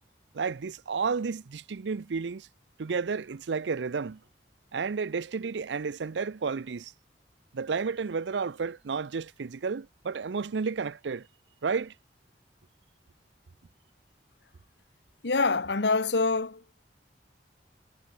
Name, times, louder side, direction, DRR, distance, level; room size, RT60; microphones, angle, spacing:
voice 1, 0.3-2.5 2.8-4.2 4.7-6.9 7.5-11.3 11.6-11.9, right 5 dB, 85° right, 0.5 m, -31 dB
voice 2, 15.2-16.8, left 3 dB, 80° left, 1.2 m, -26 dB
head